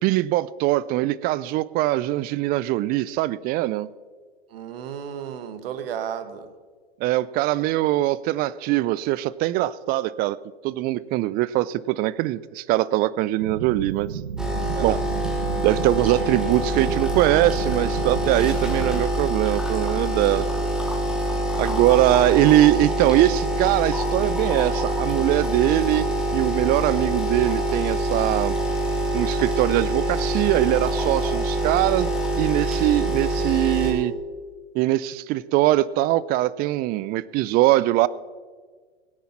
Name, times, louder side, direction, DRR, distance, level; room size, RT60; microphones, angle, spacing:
voice 1, 0.0-3.9 7.0-10.4 10.6-14.2 14.8-15.0 15.6-20.5 21.6-28.5 29.1-34.1 34.7-38.1, right 16 dB, 30° right, 20 dB, 0.4 m, -22 dB
voice 2, 4.5-6.5 14.8-15.0, right 8 dB, 65° right, 11 dB, 1.4 m, -33 dB
sound 1, 13.4-19.0, right 7 dB, 85° right, 0.9 m, -33 dB
sound 2, 14.4-33.9, right 1 dB, ahead, 2.9 m, -25 dB
18.0 x 9.3 x 5.8 m, 1.5 s
hypercardioid pair, 105°, 32 cm